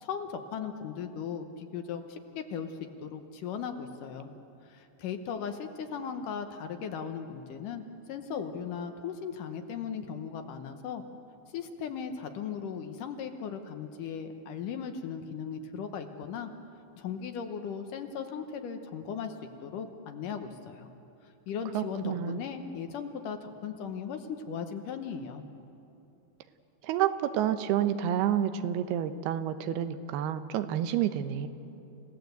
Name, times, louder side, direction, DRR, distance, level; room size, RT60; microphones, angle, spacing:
voice 1, 0.0-2.7 3.0-4.3 4.6-11.0 11.5-16.5 17.0-19.4 19.6-20.9 21.5-25.4, left 7 dB, 70° left, 6 dB, 2.3 m, -37 dB
voice 2, 21.7-22.4 26.8-31.5, right 10 dB, 90° right, 10 dB, 2.9 m, -29 dB
29.5 x 17.0 x 8.1 m, 2.8 s
omnidirectional pair, 4.4 m